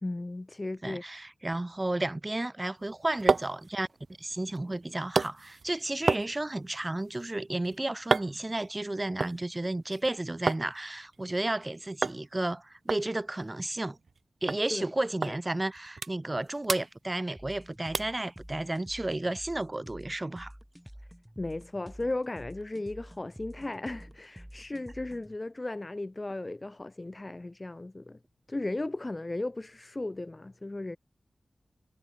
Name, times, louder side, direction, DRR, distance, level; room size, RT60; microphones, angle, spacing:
voice 1, 0.0-1.0 14.7-14.9 15.2-15.4 21.4-28.2 28.5-31.0, left 2 dB, 25° left, 3.0 m, -36 dB
voice 2, 0.8-3.9 4.2-14.0 14.4-20.5, right 2 dB, 20° right, 3.1 m, -32 dB
sound 1, 2.8-10.7 11.0-11.6 12.0-12.2 12.5-12.6 12.9-14.2 14.5-14.6 15.2-15.4 15.7-16.4 16.6-17.6 17.9-18.2 18.7-18.8, right 4 dB, 60° right, 0.7 m, -33 dB
sound 2, 17.4-25.4, equal, 5° right, 7.0 m, -49 dB
wide cardioid pair, 110°, 0 cm